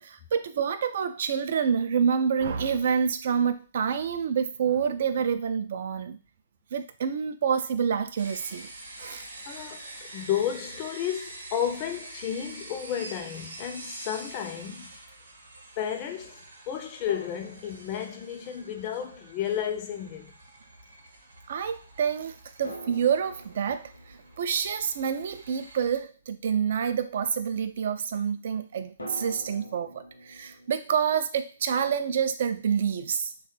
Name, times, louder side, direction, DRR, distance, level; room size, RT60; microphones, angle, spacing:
voice 1, 0.0-6.2 6.7-8.7 9.0-9.2 21.5-33.3, right 7 dB, 50° right, 0.3 m, -28 dB
sound 1, 8.2-25.8, right 2 dB, 70° right, 0.8 m, -46 dB
voice 2, 9.5-15.0 15.8-20.3, left 9 dB, 30° left, 0.4 m, -32 dB
sound 2, 13.5-13.6 17.1-18.6 22.6-26.3 29.0-31.7, equal, 75° left, 0.8 m, -47 dB
3.1 x 2.2 x 3.0 m
figure-of-eight pair, 125°, 0 cm